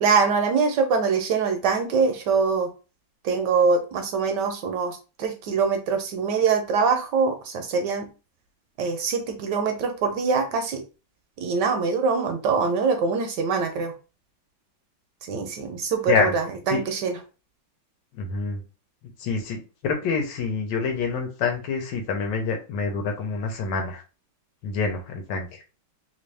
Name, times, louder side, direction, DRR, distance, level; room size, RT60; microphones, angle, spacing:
voice 1, 0.0-2.7 3.2-8.1 8.8-10.8 11.4-13.9 15.2-17.2, right 5 dB, 75° right, 6 dB, 1.1 m, -23 dB
voice 2, 18.1-18.6 19.2-24.0 24.6-25.6, left 4 dB, 70° left, 4 dB, 1.4 m, -26 dB
3.3 x 2.6 x 3.2 m, 0.32 s
omnidirectional pair, 2.1 m